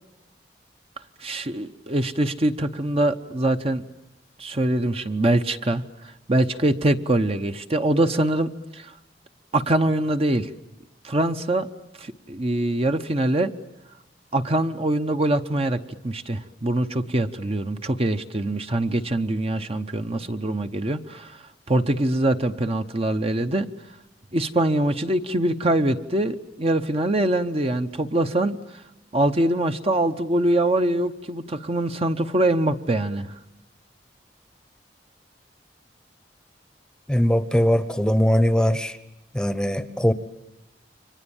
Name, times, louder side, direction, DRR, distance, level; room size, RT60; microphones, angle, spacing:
voice 1, 1.2-3.8 4.4-5.8 6.3-8.9 9.5-10.5 11.0-11.7 12.0-13.5 14.3-21.4 21.7-23.7 24.3-28.6 29.1-33.3, right 1 dB, 35° right, 7 dB, 0.9 m, -23 dB
voice 2, 37.1-39.0 39.3-40.1, equal, 5° left, 13 dB, 1.0 m, -20 dB
30.0 x 24.5 x 7.2 m, 0.88 s
head